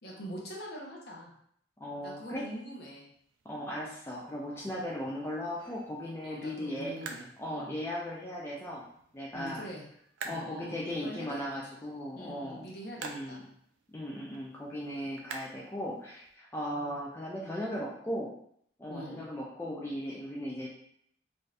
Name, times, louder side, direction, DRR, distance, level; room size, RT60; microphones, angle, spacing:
voice 1, 0.0-1.3 2.0-3.0 4.5-4.8 6.2-7.2 7.5-7.8 9.3-9.8 10.2-11.8 12.1-13.4 16.7-17.0 18.9-19.2, equal, 55° left, -2 dB, 0.8 m, -44 dB
voice 2, 1.8-2.4 3.5-6.9 7.4-8.8 9.1-9.6 10.3-12.7 13.0-13.5 13.9-18.3 18.8-20.7, equal, 10° left, -5 dB, 0.3 m, -37 dB
sound 1, 3.1-16.4, right 4 dB, 90° right, 0.4 m, -50 dB
2.6 x 2.3 x 3.2 m, 0.66 s
head